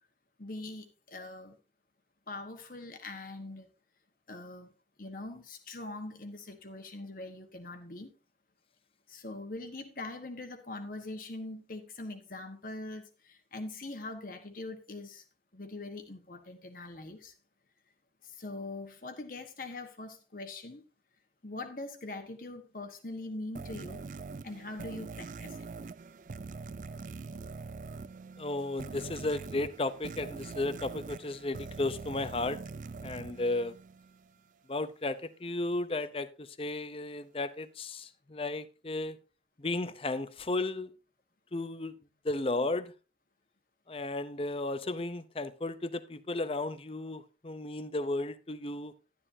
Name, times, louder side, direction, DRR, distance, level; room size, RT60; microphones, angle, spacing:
voice 1, 0.4-1.6 2.3-3.7 4.3-4.7 5.0-8.1 9.1-15.2 15.5-17.3 18.2-20.8 21.4-24.0 24.4-25.7, left 2 dB, 50° left, 1.3 m, -42 dB
sound 1, 23.5-34.3, right 4 dB, 45° right, 0.4 m, -43 dB
voice 2, 28.4-32.6 33.0-33.7 34.7-39.2 39.6-40.9 41.5-41.9 42.2-42.9 43.9-48.9, left 2 dB, 30° left, 0.6 m, -34 dB
11.5 x 10.0 x 2.7 m
head